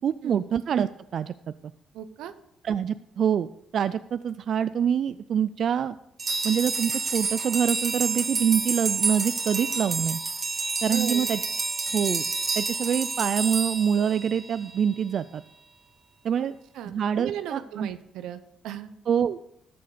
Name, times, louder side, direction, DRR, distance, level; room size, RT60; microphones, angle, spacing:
voice 1, 0.0-1.5 2.6-5.9 6.4-10.2 10.8-11.4 11.9-12.3 12.6-15.4 16.2-16.5 16.9-17.9 19.1-19.5, right 8 dB, 60° right, 14 dB, 0.3 m, -26 dB
voice 2, 1.9-2.3 10.8-11.3 16.7-18.9, right 10 dB, 90° right, 12 dB, 0.8 m, -36 dB
sound 1, 6.2-14.7, right 4 dB, 35° right, 1.4 m, -29 dB
13.5 x 6.9 x 5.0 m, 0.79 s
cardioid pair, 90°, 0 cm